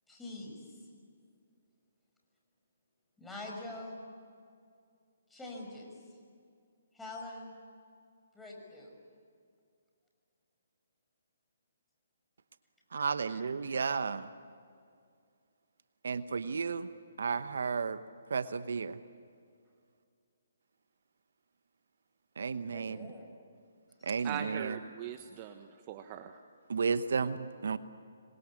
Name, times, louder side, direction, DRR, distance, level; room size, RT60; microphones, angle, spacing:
voice 1, 0.1-0.9 3.2-4.0 5.3-5.9 6.9-7.5 8.3-8.9 13.2-13.4 22.7-23.3 24.0-24.3, left 2 dB, 5° left, -2 dB, 5.9 m, -45 dB
voice 2, 12.9-14.3 16.0-16.9 17.2-18.0 18.3-19.0 22.4-23.1 24.0-24.8 26.7-27.8, right 5 dB, 70° right, 13 dB, 1.0 m, -33 dB
voice 3, 24.2-26.4, right 9 dB, 30° right, 8 dB, 1.2 m, -41 dB
27.0 x 23.5 x 8.5 m, 2.3 s
hypercardioid pair, 145°, 0 cm